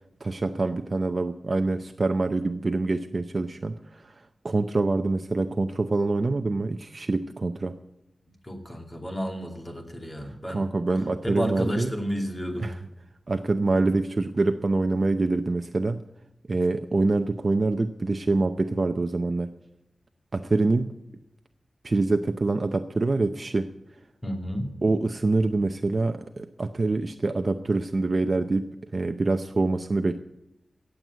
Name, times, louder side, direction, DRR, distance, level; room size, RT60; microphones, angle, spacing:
voice 1, 0.2-7.8 10.5-11.9 12.6-12.9 13.3-16.0 16.5-19.5 20.3-20.9 21.8-23.7 24.8-30.2, right 3 dB, 45° right, 7 dB, 0.6 m, -25 dB
voice 2, 8.4-10.6 11.2-12.7 24.2-24.7, equal, 20° left, 3 dB, 2.6 m, -31 dB
16.5 x 8.0 x 8.0 m, 0.88 s
wide cardioid pair, 110°, 0 cm